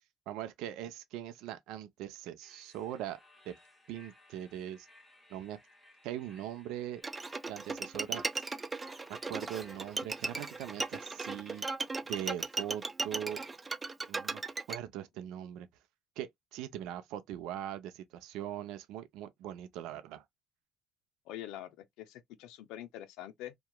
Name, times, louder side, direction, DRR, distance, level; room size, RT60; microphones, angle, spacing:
voice 1, 0.3-3.2 3.5-3.6 3.9-4.9 5.3-5.6 6.0-7.0 7.5-8.2 9.1-11.6 12.1-13.4 14.1-14.4 14.7-15.7 16.2-20.2, right 11 dB, 85° right, 0.5 m, -41 dB
sound 1, 2.4-11.7, left 1 dB, 10° left, 0.9 m, -62 dB
Bowed string instrument, 7.0-14.8, right 3 dB, 20° right, 0.3 m, -37 dB
voice 2, 21.3-23.5, left 12 dB, 85° left, 0.5 m, -45 dB
2.9 x 2.2 x 2.2 m
cardioid pair, 115°, 0 cm